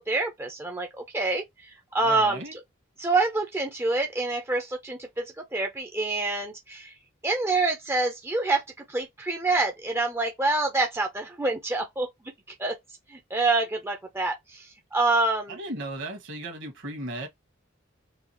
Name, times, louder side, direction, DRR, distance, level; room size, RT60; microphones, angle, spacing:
voice 1, 0.0-2.4 3.0-5.2 5.5-6.9 7.2-8.6 8.9-12.1 12.6-12.8 13.1-15.6, right 3 dB, 10° right, 0.6 m, -26 dB
voice 2, 2.0-2.6 15.5-17.3, right 1 dB, 60° right, 1.6 m, -35 dB
4.7 x 2.4 x 2.8 m
head